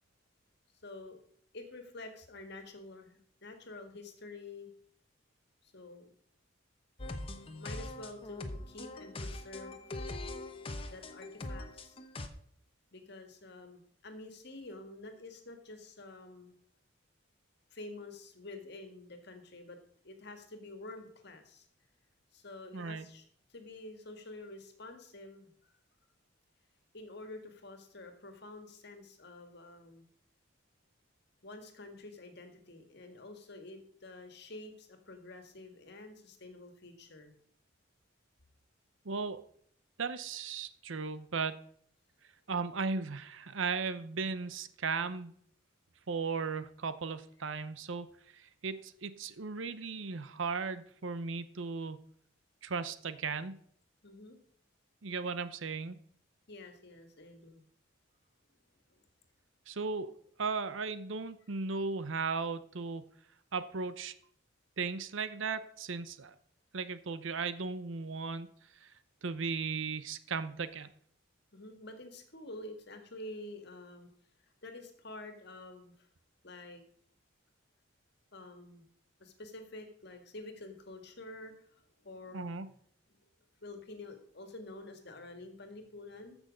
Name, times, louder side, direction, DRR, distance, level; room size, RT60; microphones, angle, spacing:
voice 1, 0.8-1.2 1.5-4.7 5.6-6.1 7.6-9.9 10.9-12.0 12.9-16.5 17.7-19.8 20.0-21.7 22.3-23.2 23.5-25.5 26.9-30.0 31.4-37.3 54.0-54.4 56.5-57.6 58.9-59.0 71.5-74.1 74.4-76.1 76.4-76.8 78.3-78.9 79.2-82.5 83.1-83.2 83.6-86.4, left 2 dB, 55° left, 6 dB, 1.8 m, -48 dB
sound 1, 7.0-12.3, left 2 dB, 25° left, 0.9 m, -42 dB
voice 2, 22.7-23.1 39.0-39.4 40.0-41.5 42.5-45.3 46.1-48.1 48.3-52.0 52.6-53.6 55.0-56.0 59.7-60.1 60.4-63.0 63.5-64.1 64.8-66.3 66.7-68.5 68.8-68.9 69.2-70.9 82.3-82.7, right 4 dB, 70° right, 13 dB, 0.7 m, -36 dB
14.5 x 6.3 x 5.2 m, 0.62 s
head